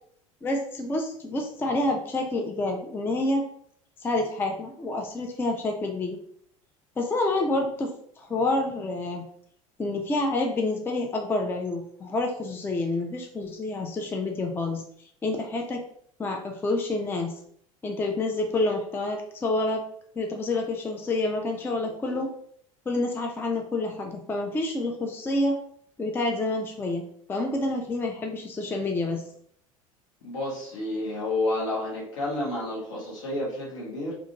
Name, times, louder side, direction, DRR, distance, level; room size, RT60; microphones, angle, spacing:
voice 1, 0.4-3.4 4.0-6.2 7.0-9.3 9.8-14.8 15.2-15.8 16.2-17.3 17.8-19.8 20.2-22.3 22.9-25.6 26.0-27.0 27.3-29.2, left 2 dB, 10° left, 2 dB, 0.4 m, -28 dB
voice 2, 30.2-34.1, left 2 dB, 65° left, -4 dB, 1.2 m, -30 dB
2.5 x 2.5 x 2.8 m, 0.65 s
figure-of-eight pair, 70°, 18 cm